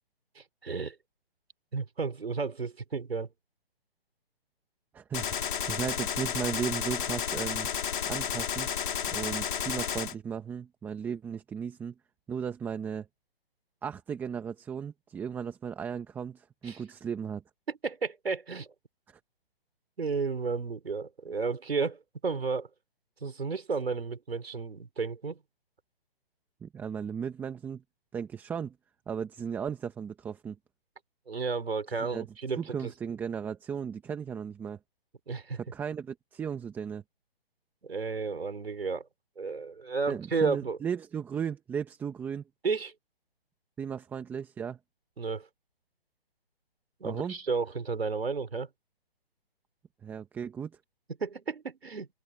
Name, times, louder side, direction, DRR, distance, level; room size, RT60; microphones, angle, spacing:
voice 1, 0.3-1.0 1.7-3.3 16.6-16.8 17.7-18.7 20.0-22.7 23.2-25.4 31.3-32.9 35.3-35.6 37.8-39.1 39.4-40.8 42.6-42.9 45.2-45.5 47.0-48.7 51.2-52.1, right 4 dB, 85° right, 5.0 m, -32 dB
voice 2, 4.9-7.7 8.1-8.7 9.1-11.9 12.3-13.1 13.8-17.4 19.1-19.2 26.6-27.8 28.1-28.8 29.1-30.6 32.0-32.3 32.6-34.8 35.5-37.0 40.1-42.4 43.8-44.8 47.0-47.4 50.0-50.7, right 7 dB, 5° right, 1.1 m, -36 dB
Gunshot gunfire, 5.1-10.1, left 8 dB, 55° left, 2.6 m, -32 dB
hypercardioid pair, 155°, 30 cm